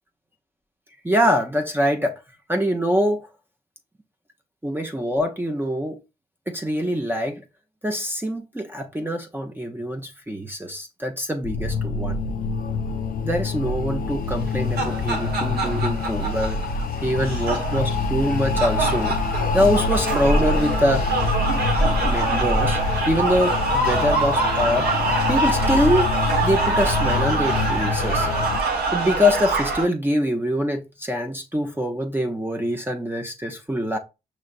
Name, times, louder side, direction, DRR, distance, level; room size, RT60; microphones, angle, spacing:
voice 1, 1.0-2.2 2.5-3.3 4.6-6.0 6.5-7.4 7.8-12.2 13.2-19.2 19.5-21.1 22.0-22.8 23.1-24.9 25.3-26.2 26.4-28.3 28.9-34.0, equal, 15° right, 0.7 m, -24 dB
sound 1, 11.4-28.6, left 4 dB, 60° left, 0.5 m, -25 dB
sound 2, 14.4-29.8, right 3 dB, 80° right, 1.2 m, -25 dB
5.3 x 3.1 x 2.5 m
supercardioid pair, 50°, 16 cm